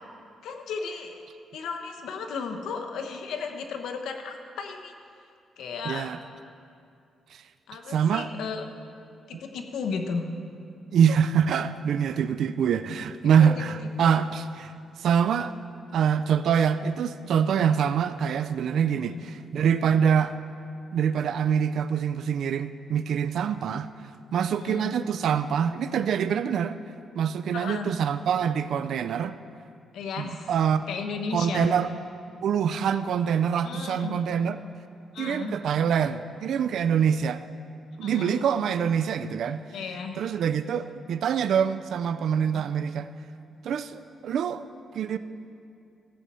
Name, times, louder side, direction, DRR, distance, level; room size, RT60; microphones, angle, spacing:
voice 1, 0.4-1.1 1.5-4.9 5.6-6.1 7.7-8.6 9.3-10.3 13.4-13.5 19.0-19.2 24.5-24.9 27.5-27.9 29.9-30.5 30.9-31.7 33.6-34.2 35.1-35.6 38.0-38.5 39.7-40.2 42.5-42.6, left 5 dB, 85° left, 5 dB, 1.0 m, -34 dB
voice 2, 5.8-6.2 7.3-7.4 7.9-8.3 9.3-9.4 10.9-15.5 15.9-20.3 20.9-23.9 24.3-26.8 27.2-29.4 30.2-30.8 31.3-31.9 32.4-34.6 35.2-37.4 38.0-39.6 40.2-43.1 43.6-44.7 44.9-45.2, right 7 dB, 70° right, 11 dB, 0.3 m, -25 dB
14.5 x 7.5 x 5.5 m, 2.5 s
cardioid pair, 130°, 0 cm